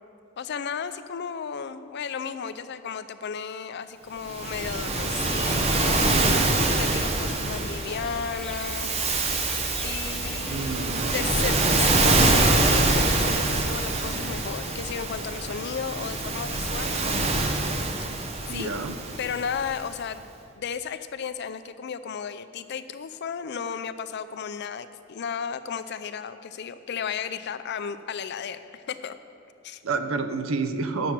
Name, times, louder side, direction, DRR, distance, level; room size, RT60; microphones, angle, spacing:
voice 1, 0.4-9.4 9.8-17.0 18.2-18.8 19.2-20.3 20.6-29.1 29.6-29.8, left 7 dB, 55° left, 12 dB, 0.4 m, -34 dB
Waves surf, 4.3-19.8, right 2 dB, 30° right, 0.7 m, -25 dB
sound 1, 7.9-13.5, equal, 5° left, 0.5 m, -38 dB
voice 2, 10.5-11.1 18.5-19.0 29.8-31.1, right 4 dB, 80° right, 8 dB, 0.7 m, -29 dB
9.6 x 7.1 x 5.9 m, 2.6 s
head